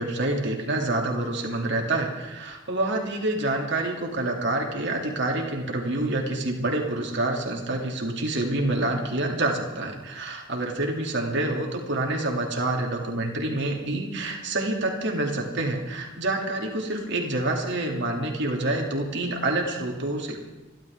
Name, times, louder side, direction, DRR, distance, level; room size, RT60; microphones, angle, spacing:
voice 1, 0.0-20.4, right 2 dB, 65° right, 1 dB, 2.8 m, -27 dB
27.0 x 12.0 x 3.7 m, 1.1 s
head